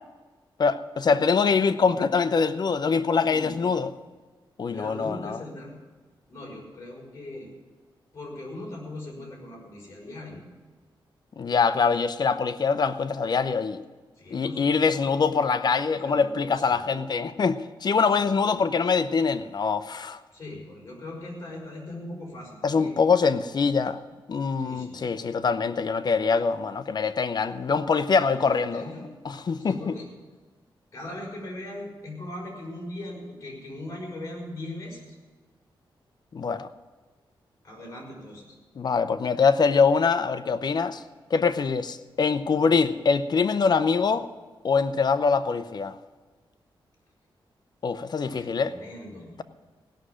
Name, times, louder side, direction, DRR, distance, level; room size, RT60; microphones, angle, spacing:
voice 1, 0.6-3.9 4.6-5.4 11.4-13.8 14.3-20.2 22.6-24.0 24.3-28.8 29.2-30.0 36.3-36.7 38.8-41.0 41.3-44.3 44.6-46.0 47.8-48.7, left 5 dB, 50° left, 0.7 m, -24 dB
voice 2, 4.7-5.7 6.3-7.5 8.1-10.4 14.2-15.2 15.9-17.0 18.0-18.7 20.3-22.9 24.6-25.2 28.2-29.1 29.6-30.1 30.9-35.2 37.6-38.6 48.2-49.4, left 1 dB, 35° left, 5.9 m, -40 dB
17.0 x 6.4 x 9.9 m
wide cardioid pair, 100°, 9 cm